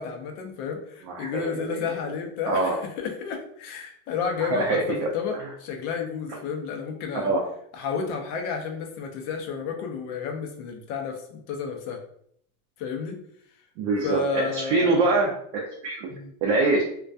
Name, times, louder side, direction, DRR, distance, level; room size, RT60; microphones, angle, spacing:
voice 1, 0.0-7.3 7.7-12.0 12.8-13.2 14.0-15.1 16.1-16.3, left 6 dB, 40° left, 4 dB, 0.4 m, -31 dB
voice 2, 1.0-1.8 2.5-2.8 4.4-5.5 6.3-6.4 7.1-7.4 13.8-16.1 16.4-16.8, right 3 dB, 55° right, 0 dB, 0.5 m, -25 dB
2.2 x 2.2 x 2.5 m, 0.67 s
supercardioid pair, 150°, 44 cm